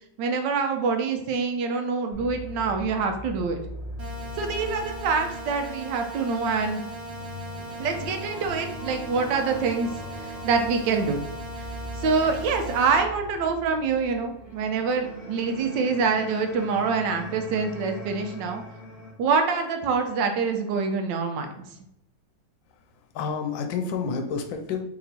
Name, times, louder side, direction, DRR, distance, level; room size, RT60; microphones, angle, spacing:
voice 1, 0.2-3.6 4.3-6.8 7.8-11.2 11.9-18.6 19.2-21.5, right 5 dB, 75° right, 5 dB, 1.2 m, -25 dB
sound 1, 2.1-19.1, left 1 dB, 10° left, 1.1 m, -40 dB
sound 2, 4.0-13.0, right 2 dB, 50° right, 1.1 m, -39 dB
voice 2, 22.7-24.8, left 5 dB, 85° left, 4 dB, 1.4 m, -30 dB
3.4 x 2.9 x 4.0 m, 0.80 s
omnidirectional pair, 2.1 m